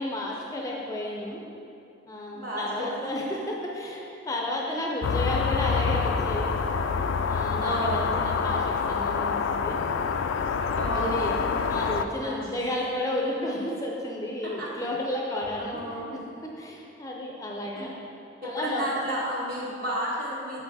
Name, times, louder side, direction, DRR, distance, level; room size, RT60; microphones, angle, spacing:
voice 1, 0.0-1.4 2.1-6.6 7.3-9.8 10.9-11.3 11.7-17.9 18.4-19.0, left 1 dB, 15° left, -1 dB, 0.5 m, -32 dB
voice 2, 2.3-3.1 7.6-8.1 10.7-11.6 12.2-12.7 14.4-14.9 15.6-16.1 17.8-17.9 18.4-20.6, equal, 50° right, -5 dB, 1.4 m, -32 dB
sound 1, 5.0-12.0, left 5 dB, 80° left, 0.3 m, -27 dB
6.2 x 5.7 x 4.0 m, 2.7 s
head